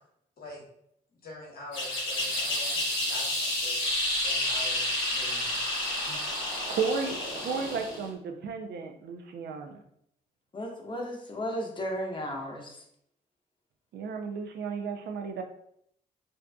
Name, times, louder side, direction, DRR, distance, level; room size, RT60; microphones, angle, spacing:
voice 1, 1.2-3.9 4.2-5.6, left 2 dB, 60° left, -2 dB, 0.9 m, -45 dB
sound 1, 1.7-8.1, left 1 dB, 90° left, 0.7 m, -30 dB
voice 2, 6.7-9.8 13.9-15.4, right 5 dB, 70° right, 4 dB, 0.4 m, -34 dB
voice 3, 10.5-12.7, equal, 25° left, 1 dB, 0.7 m, -34 dB
2.5 x 2.3 x 2.2 m, 0.72 s
supercardioid pair, 50°, 18 cm